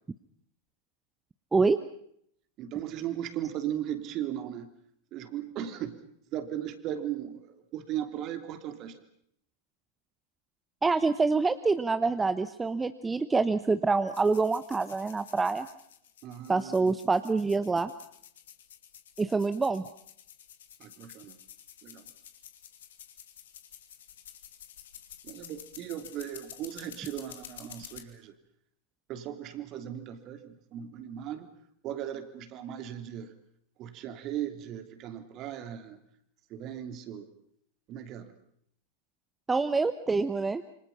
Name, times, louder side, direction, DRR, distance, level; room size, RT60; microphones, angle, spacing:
voice 1, 2.6-4.7 5.1-6.0 6.3-9.0 16.2-16.9 20.8-21.4 21.8-22.1 25.2-28.3 29.1-31.5 31.8-33.3 33.8-36.0 36.5-37.3 37.9-38.3, right 11 dB, 40° right, 8 dB, 3.0 m, -37 dB
voice 2, 10.8-15.7 16.5-17.9 19.2-19.9 39.5-40.6, right 4 dB, 15° right, 12 dB, 0.9 m, -26 dB
sound 1, 14.1-28.0, left 10 dB, 65° left, 2.7 m, -51 dB
27.5 x 25.0 x 5.6 m, 0.69 s
figure-of-eight pair, 95°, 0 cm